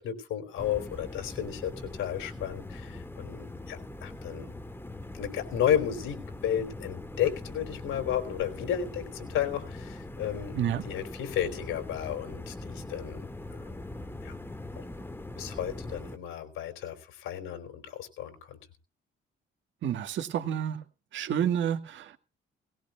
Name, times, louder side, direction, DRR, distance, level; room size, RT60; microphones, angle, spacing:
voice 1, 0.0-4.5 5.1-10.6 10.8-13.2 13.5-13.8 14.2-14.4 14.7-14.8 15.4-18.6, left 9 dB, 85° left, 6 dB, 3.5 m, -33 dB
sound 1, 0.6-16.2, left 2 dB, 10° left, 2.0 m, -41 dB
voice 2, 19.8-20.8 21.1-22.2, right 9 dB, 70° right, 7 dB, 2.0 m, -29 dB
19.0 x 18.0 x 2.4 m, 0.32 s
cardioid pair, 90°, 20 cm